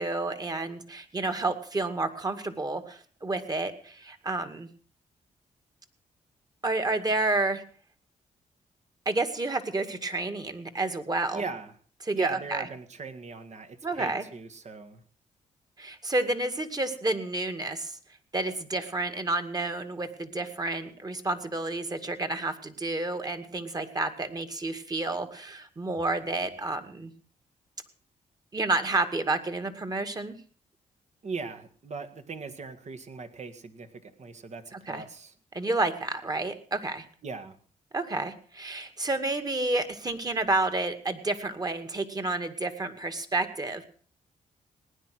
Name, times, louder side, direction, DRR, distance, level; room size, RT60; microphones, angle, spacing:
voice 1, 0.0-4.7 6.6-7.6 9.1-11.4 12.0-12.7 13.8-14.2 15.8-18.0 18.3-27.1 28.5-30.4 34.7-35.0 35.5-37.1 37.9-43.9, right 2 dB, 30° right, 8 dB, 2.2 m, -30 dB
voice 2, 11.3-11.7 12.1-15.0 31.2-35.3 37.2-37.6, right 4 dB, 55° right, 8 dB, 2.0 m, -39 dB
18.5 x 10.0 x 6.1 m, 0.44 s
cardioid pair, 70°, 14 cm